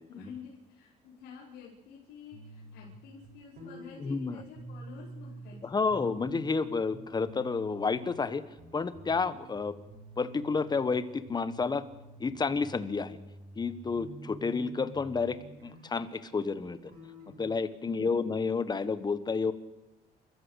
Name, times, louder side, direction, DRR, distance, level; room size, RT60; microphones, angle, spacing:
voice 1, 0.1-5.7 17.8-18.2, left 6 dB, 90° left, -5 dB, 5.0 m, -49 dB
sound 1, 2.3-5.6 5.9-8.3 8.6-11.0 11.2-17.6, right 1 dB, 65° right, 7.7 m, -49 dB
voice 2, 4.0-4.4 5.6-8.4 8.7-9.7 10.2-11.9 12.2-13.2 13.5-16.9 17.4-19.5, left 4 dB, 25° left, 13 dB, 1.5 m, -30 dB
28.5 x 14.0 x 8.2 m, 0.96 s
cardioid pair, 110°, 17 cm